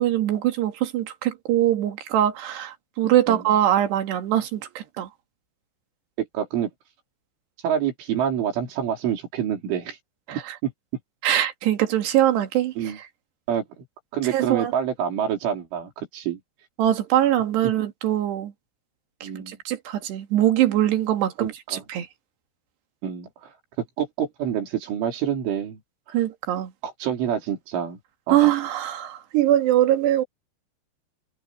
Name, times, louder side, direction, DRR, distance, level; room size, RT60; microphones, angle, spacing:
voice 1, 0.0-5.1 10.3-10.6 11.2-13.1 14.3-14.7 16.8-18.5 19.2-22.1 26.1-26.7 28.3-30.2, right 12 dB, 65° right, 4.0 m, -22 dB
voice 2, 6.2-6.7 7.6-10.0 10.6-10.7 12.8-13.0 13.5-13.6 14.1-16.4 19.2-19.6 21.4-21.8 23.0-23.5 24.0-25.8 26.8-28.0 28.3-28.4, right 9 dB, 85° right, 6.4 m, -27 dB
omnidirectional pair, 5.4 m